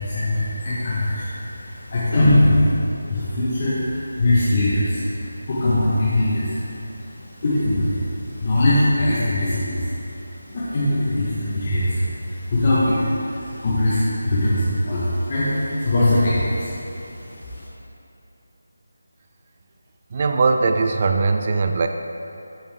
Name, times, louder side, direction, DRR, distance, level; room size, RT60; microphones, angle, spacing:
voice 1, 0.0-2.7 3.1-5.1 5.4-6.6 7.0-9.9 10.5-17.7, left 1 dB, 35° left, -10 dB, 1.1 m, -21 dB
voice 2, 20.1-21.9, right 4 dB, 30° right, 5 dB, 0.3 m, -20 dB
6.3 x 5.7 x 3.4 m, 2.8 s
figure-of-eight pair, 170°, 0 cm